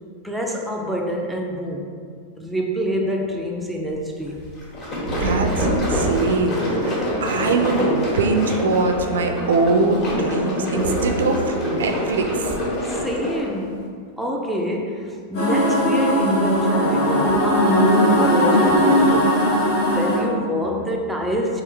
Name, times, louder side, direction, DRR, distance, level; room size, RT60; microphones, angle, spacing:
voice 1, 0.2-1.9 2.4-4.4 12.8-19.5 19.9-21.6, equal, ahead, -1 dB, 0.4 m, -26 dB
sound 1, 4.6-13.5, equal, 40° left, 1.5 m, -25 dB
voice 2, 5.2-6.9 7.2-12.5, right 3 dB, 90° right, 4 dB, 0.4 m, -22 dB
sound 2, 15.3-20.2, equal, 65° left, 1.2 m, -18 dB
3.6 x 2.9 x 3.3 m, 2.1 s
hypercardioid pair, 125°, 0 cm